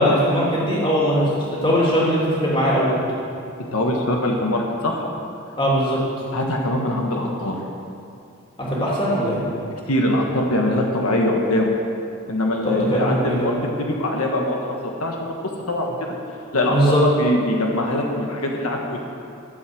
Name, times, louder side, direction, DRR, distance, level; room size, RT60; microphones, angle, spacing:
voice 1, 0.0-3.0 5.6-6.0 8.7-9.4 12.6-13.5 16.6-17.0, equal, 25° left, -5 dB, 2.7 m, -20 dB
voice 2, 3.7-5.1 6.3-7.6 9.9-11.7 12.3-15.3 15.7-15.9 16.5-19.0, left 1 dB, 85° left, 0 dB, 1.5 m, -22 dB
12.5 x 7.7 x 7.8 m, 2.5 s
head